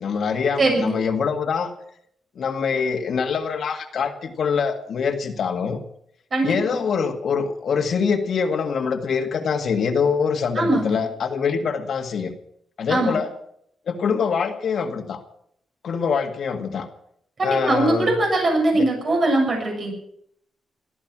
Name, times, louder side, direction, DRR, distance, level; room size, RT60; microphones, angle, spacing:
voice 1, 0.0-1.7 2.4-5.8 6.4-12.3 12.8-13.3 13.9-15.2 15.8-16.9 17.4-18.1 18.7-18.9, left 6 dB, 70° left, 3 dB, 1.9 m, -24 dB
voice 2, 0.6-1.0 6.3-6.8 10.6-10.9 12.9-13.2 17.4-19.9, right 2 dB, 50° right, 2 dB, 6.9 m, -21 dB
17.5 x 13.5 x 6.1 m, 0.71 s
cardioid pair, 80°, 0 cm